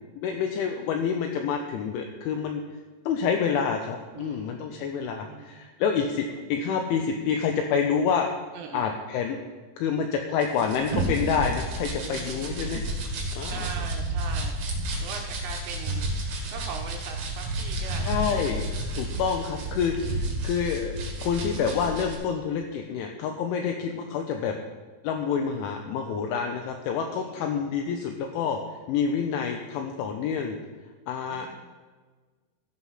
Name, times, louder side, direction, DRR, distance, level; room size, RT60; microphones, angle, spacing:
voice 1, 0.2-2.6 3.1-8.3 8.7-9.4 9.8-12.8 13.4-13.7 18.1-18.6 19.0-24.5 25.0-28.6 28.9-30.6 31.1-31.5, left 6 dB, 80° left, 3 dB, 2.9 m, -28 dB
voice 2, 4.1-5.6 8.5-8.9 12.0-12.8 13.5-16.1 16.5-18.6 22.3-22.7 23.5-23.7 27.1-27.6 31.3-31.5, right 6 dB, 80° right, 2 dB, 2.6 m, -42 dB
sound 1, 10.4-22.1, right 1 dB, 55° right, 2.5 m, -31 dB
14.0 x 5.8 x 5.7 m, 1.4 s
omnidirectional pair, 5.9 m